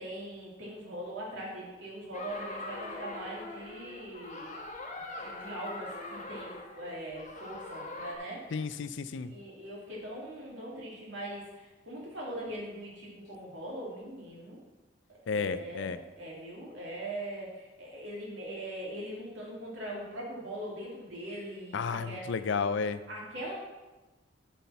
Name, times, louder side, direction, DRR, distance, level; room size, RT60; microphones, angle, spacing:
voice 1, 0.0-4.5 5.2-8.6 9.2-14.6 15.1-22.2 23.1-23.5, right 1 dB, 70° right, -4 dB, 2.8 m, -41 dB
sound 1, 2.1-8.2, left 2 dB, 40° left, 1.1 m, -42 dB
voice 2, 8.5-9.3 15.3-16.0 21.7-23.0, left 5 dB, 70° left, 12 dB, 0.5 m, -32 dB
7.3 x 5.6 x 5.8 m, 1.2 s
head